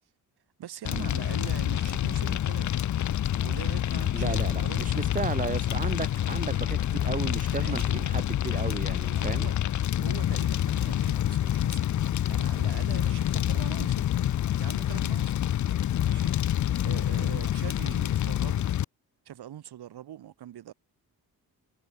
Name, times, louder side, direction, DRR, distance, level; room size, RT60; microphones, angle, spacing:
voice 1, 0.6-2.8 3.1-5.0 7.6-8.1 8.8-9.6 10.0-14.1 14.6-15.4 16.0-16.5 16.8-18.7 19.3-20.7, right 11 dB, 85° right, 3.5 m, -43 dB
Fire, 0.8-18.8, left 11 dB, 50° left, 0.6 m, -27 dB
voice 2, 4.1-9.5, right 4 dB, 20° right, 1.5 m, -34 dB
wide cardioid pair, 150°, 38 cm